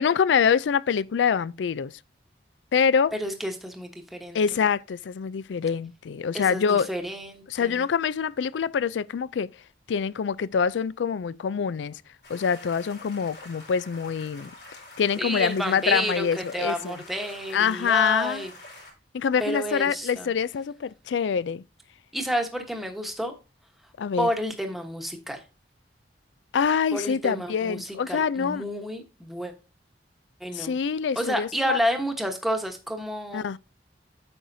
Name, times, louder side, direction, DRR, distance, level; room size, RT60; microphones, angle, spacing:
voice 1, 0.0-1.9 2.7-3.1 4.3-6.9 7.5-9.5 9.9-12.0 12.3-14.5 15.0-17.0 17.5-18.4 19.1-21.6 24.0-24.3 26.5-28.6 30.5-31.8 33.3-33.6, left 6 dB, 85° left, 0.4 m, -25 dB
voice 2, 3.2-4.4 6.3-7.8 15.2-18.5 19.4-20.3 22.1-23.3 24.2-25.4 26.9-29.5 30.4-30.7 31.1-33.4, equal, ahead, 1.1 m, -30 dB
sound 1, 12.2-18.9, left 2 dB, 60° left, 3.7 m, -46 dB
8.8 x 6.3 x 2.7 m
head